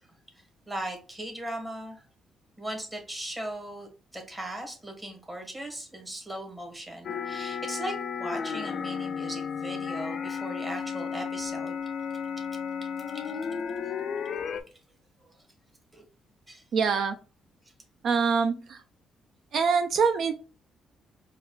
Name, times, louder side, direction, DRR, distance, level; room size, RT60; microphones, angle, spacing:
voice 1, 0.7-2.0 2.6-11.8 13.1-13.2 15.2-15.3 15.9-16.0 16.5-16.6, right 1 dB, 15° right, 2 dB, 1.3 m, -38 dB
sound 1, 7.0-14.6, left 6 dB, 55° left, 0.3 m, -33 dB
voice 2, 16.7-17.2 18.0-18.8 19.5-20.3, right 5 dB, 65° right, 8 dB, 0.3 m, -24 dB
4.7 x 2.3 x 2.3 m, 0.34 s
cardioid pair, 90°, 0 cm